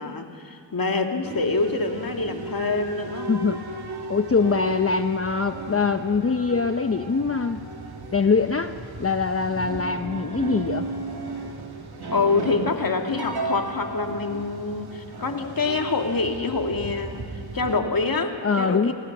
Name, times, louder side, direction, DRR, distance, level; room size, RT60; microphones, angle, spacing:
voice 1, 0.0-3.3 12.1-17.2 17.5-18.9, left 3 dB, 45° left, 4 dB, 2.6 m, -26 dB
sound 1, 1.2-17.8, right 3 dB, 50° right, 3.3 m, -35 dB
voice 2, 3.3-3.6 4.1-7.7 8.1-10.9 18.4-18.9, left 5 dB, 30° left, 9 dB, 0.9 m, -23 dB
28.5 x 19.5 x 6.2 m, 2.3 s
cardioid pair, 55°, 49 cm